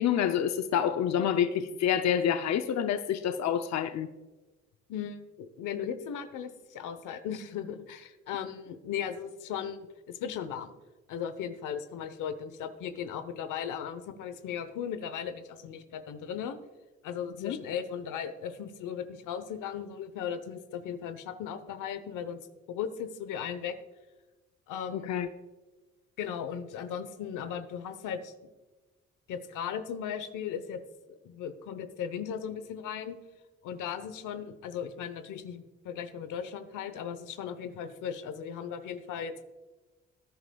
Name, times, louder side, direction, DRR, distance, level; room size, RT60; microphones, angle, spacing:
voice 1, 0.0-4.1 17.4-17.6 24.9-25.3, left 9 dB, 60° left, 0.7 m, -27 dB
voice 2, 4.9-10.7 11.1-16.6 17.0-22.4 22.7-23.8 24.7-25.3 26.2-28.3 29.3-30.8 31.1-33.2 33.6-39.4, left 8 dB, 85° left, 1.0 m, -37 dB
18.5 x 10.5 x 2.3 m
cardioid pair, 90°, 30 cm